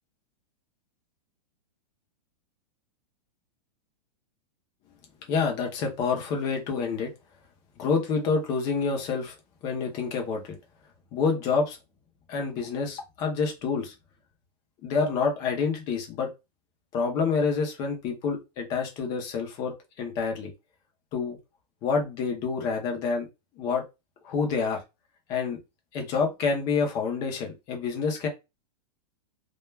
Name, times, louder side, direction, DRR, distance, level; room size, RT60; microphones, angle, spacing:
voice 1, 5.3-7.1 7.8-9.3 9.6-10.6 11.1-11.8 12.3-13.9 14.8-16.3 16.9-20.5 21.1-21.4 21.8-23.3 23.6-23.8 24.2-24.8 25.3-25.6 25.9-28.3, left 5 dB, 15° left, 2 dB, 0.4 m, -27 dB
2.2 x 2.2 x 3.1 m, 0.24 s
supercardioid pair, 175°, 21 cm